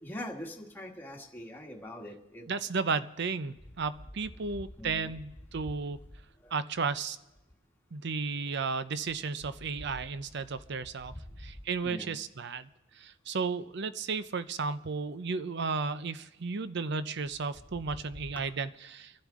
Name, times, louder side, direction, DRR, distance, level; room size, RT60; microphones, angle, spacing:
voice 1, 0.0-2.6 4.8-5.1 11.8-12.2 18.3-18.4, left 1 dB, 10° left, 0 dB, 1.6 m, -42 dB
voice 2, 2.5-6.0 6.5-7.2 7.9-11.1 11.4-12.7 12.9-19.1, right 4 dB, 55° right, 13 dB, 0.6 m, -34 dB
24.5 x 11.5 x 3.7 m, 0.95 s
head